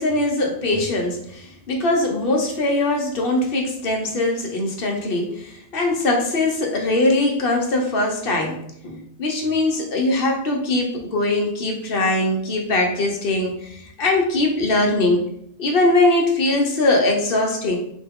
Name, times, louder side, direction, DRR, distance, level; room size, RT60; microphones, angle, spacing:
voice 1, 0.0-15.2 15.6-17.8, left 2 dB, 55° left, 1 dB, 0.8 m, -21 dB
4.2 x 2.3 x 3.4 m, 0.70 s
omnidirectional pair, 1.2 m